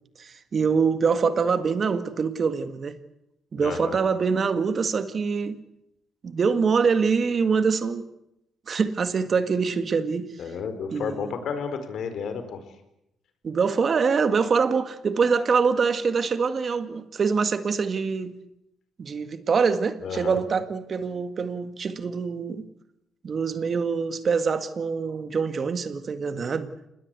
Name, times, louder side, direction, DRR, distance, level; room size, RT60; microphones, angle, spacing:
voice 1, 0.2-3.0 3.5-5.6 6.2-8.0 8.7-10.3 10.9-11.3 13.4-18.3 19.0-22.7 23.2-26.7, right 5 dB, 45° right, 1.8 m, -24 dB
voice 2, 3.6-4.0 10.4-12.6 20.0-20.4, left 6 dB, 65° left, 4.4 m, -32 dB
27.0 x 20.0 x 8.2 m
cardioid pair, 90°, 0 cm